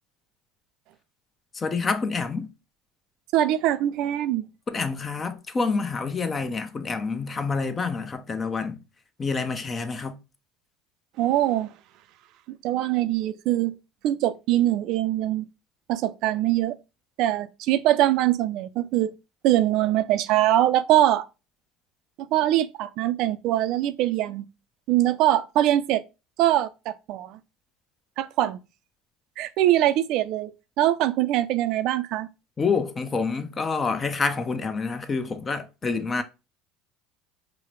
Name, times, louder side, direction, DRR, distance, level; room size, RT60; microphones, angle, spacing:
voice 1, 1.5-2.5 4.7-8.8 9.2-10.2 32.6-36.2, left 4 dB, 30° left, 0.6 m, -27 dB
voice 2, 3.3-4.4 11.2-11.7 12.6-13.7 14.0-15.5 15.9-16.8 17.2-19.1 19.4-21.2 22.3-24.4 24.9-26.0 26.4-27.4 28.2-28.6 29.4-30.5 30.8-32.3, right 13 dB, 65° right, 0.3 m, -22 dB
4.7 x 2.0 x 3.0 m
hypercardioid pair, 85°, 0 cm